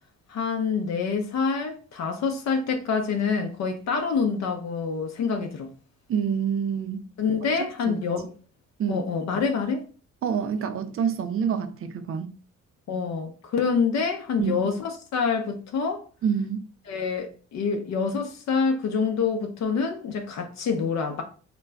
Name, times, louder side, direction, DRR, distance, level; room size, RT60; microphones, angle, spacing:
voice 1, 0.3-5.7 7.2-8.3 8.9-9.8 12.9-16.0 16.9-21.2, left 5 dB, 60° left, 0.6 m, -26 dB
voice 2, 6.1-7.1 7.9-8.0 8.8-9.1 10.2-12.4 14.4-14.7 16.2-16.6, right 7 dB, 45° right, 0.5 m, -27 dB
2.4 x 2.1 x 3.3 m
cardioid pair, 90°, 30 cm